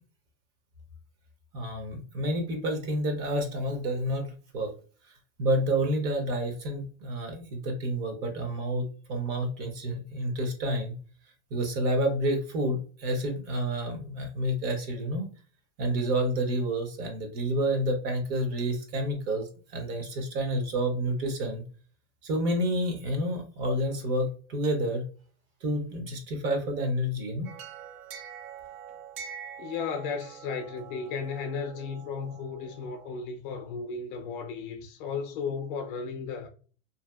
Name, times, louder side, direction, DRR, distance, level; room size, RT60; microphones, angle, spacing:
voice 1, 1.5-4.7 5.4-10.9 11.5-15.3 15.8-21.6 22.2-25.0 25.6-27.5, right 1 dB, 40° right, 0.8 m, -29 dB
sound 1, 27.4-33.1, right 8 dB, 75° right, 0.6 m, -45 dB
voice 2, 29.6-36.5, left 5 dB, 45° left, 0.5 m, -35 dB
2.7 x 2.4 x 2.3 m
supercardioid pair, 140°, 38 cm